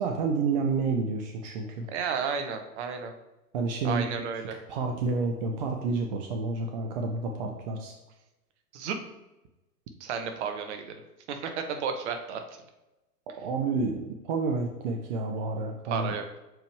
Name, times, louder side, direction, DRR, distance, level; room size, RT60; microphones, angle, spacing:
voice 1, 0.0-1.9 3.5-4.1 4.7-7.9 13.4-16.1, right 4 dB, 30° right, 4 dB, 0.5 m, -29 dB
voice 2, 1.9-3.1 3.8-4.6 8.7-9.0 10.0-11.0 11.3-12.4 15.9-16.2, right 6 dB, 45° right, 6 dB, 1.0 m, -32 dB
6.6 x 4.6 x 3.1 m, 1.0 s
figure-of-eight pair, 100°, 47 cm